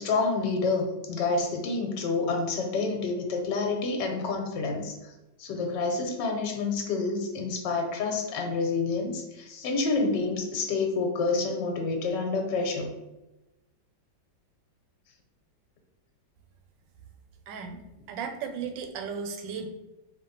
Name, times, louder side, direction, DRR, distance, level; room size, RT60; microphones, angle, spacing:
voice 1, 0.0-5.1 5.4-12.9, left 3 dB, 70° left, 3 dB, 1.5 m, -28 dB
voice 2, 17.5-17.8 18.1-19.7, right 6 dB, 85° right, 5 dB, 1.3 m, -35 dB
4.6 x 2.8 x 3.9 m, 0.98 s
omnidirectional pair, 2.0 m